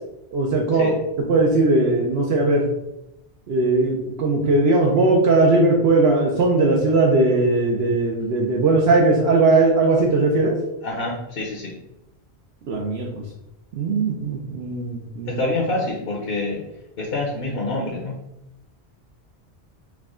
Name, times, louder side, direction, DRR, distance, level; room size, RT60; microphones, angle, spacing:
voice 1, 0.3-0.9 1.3-2.7 3.5-10.6 12.7-13.1 13.8-15.4, right 2 dB, 70° right, -1 dB, 0.9 m, -19 dB
voice 2, 10.8-11.7 15.3-16.6 17.0-18.1, left 2 dB, 60° left, -1 dB, 1.0 m, -26 dB
4.8 x 2.2 x 3.6 m, 0.86 s
omnidirectional pair, 1.1 m